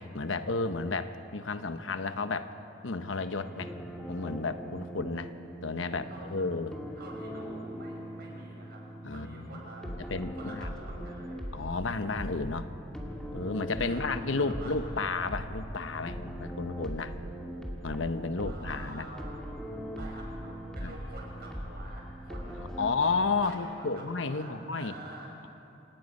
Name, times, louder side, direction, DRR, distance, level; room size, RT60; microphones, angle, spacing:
voice 1, 0.0-2.5 2.8-3.7 4.1-5.3 5.6-6.7 9.0-9.6 10.1-10.7 11.5-12.7 13.3-17.1 17.8-19.1 20.8-20.9 22.8-24.9, left 3 dB, 90° left, 10 dB, 1.0 m, -32 dB
sound 1, 3.2-22.9, equal, 5° left, 2.4 m, -40 dB
voice 2, 7.0-8.8 9.1-9.9 10.4-11.5 11.9-12.2 13.9-15.1 18.4-19.4 19.9-22.9 23.4-25.4, right 1 dB, 60° right, -1 dB, 5.7 m, -47 dB
27.0 x 18.5 x 5.4 m, 2.8 s
head